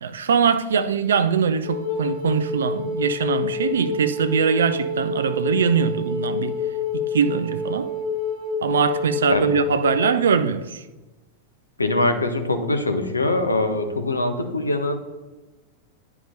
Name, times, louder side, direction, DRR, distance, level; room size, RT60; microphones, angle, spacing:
voice 1, 0.0-6.6 6.9-7.9 8.6-10.8, right 6 dB, 65° right, 0.3 m, -22 dB
Wind instrument woodwind instrument, 1.6-10.1, left 4 dB, 60° left, 1.8 m, -28 dB
voice 2, 11.8-15.0, left 2 dB, 80° left, 0.8 m, -23 dB
10.0 x 4.8 x 2.7 m
figure-of-eight pair, 90°, 0 cm